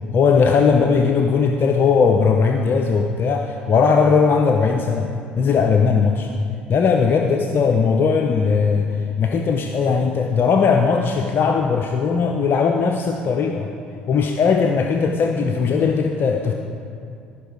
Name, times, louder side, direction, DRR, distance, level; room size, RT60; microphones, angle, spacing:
voice 1, 0.1-6.3 6.7-13.7 14.1-16.5, left 5 dB, 45° left, 4 dB, 0.6 m, -18 dB
14.5 x 5.9 x 4.7 m, 2.4 s
hypercardioid pair, 55°, 5 cm